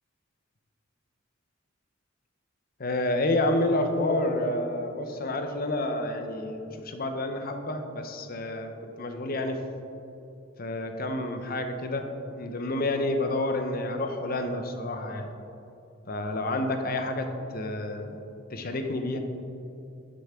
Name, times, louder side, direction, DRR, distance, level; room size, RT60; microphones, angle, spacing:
voice 1, 2.8-8.7 9.0-9.6 10.6-15.4 16.1-18.2 18.5-19.2, left 1 dB, 50° left, 6 dB, 0.8 m, -29 dB
11.0 x 6.7 x 3.7 m, 2.7 s
head